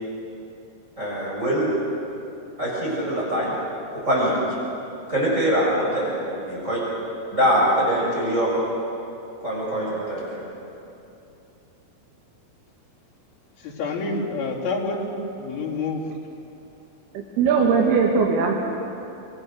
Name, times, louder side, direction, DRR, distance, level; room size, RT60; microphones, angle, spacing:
voice 1, 1.0-1.7 2.6-3.6 3.9-4.4 5.1-6.8 7.3-8.5 9.4-10.4, equal, 20° right, -6 dB, 6.6 m, -23 dB
voice 2, 13.6-16.0, left 3 dB, 75° left, -5 dB, 5.4 m, -28 dB
voice 3, 17.1-18.5, right 5 dB, 80° right, -1 dB, 3.6 m, -20 dB
27.5 x 21.5 x 6.6 m, 2.8 s
omnidirectional pair, 4.5 m